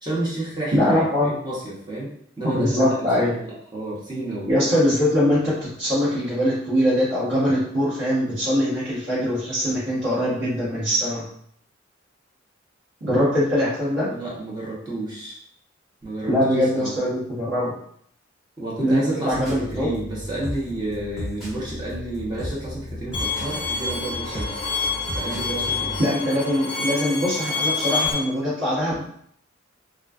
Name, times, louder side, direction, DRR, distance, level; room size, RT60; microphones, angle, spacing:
voice 1, 0.0-4.5 14.0-15.4 16.0-16.9 18.6-24.6 25.1-26.1, right 1 dB, 20° right, -6 dB, 0.7 m, -31 dB
voice 2, 0.7-1.3 2.4-3.4 4.5-11.3 13.0-14.1 16.3-17.7 18.8-19.9 26.0-29.0, equal, 65° right, -11 dB, 1.2 m, -22 dB
sound 1, 19.3-26.0, equal, ahead, 1.2 m, -35 dB
Bowed string instrument, 23.1-28.1, left 4 dB, 25° left, 0.5 m, -27 dB
2.3 x 2.3 x 2.3 m, 0.65 s
head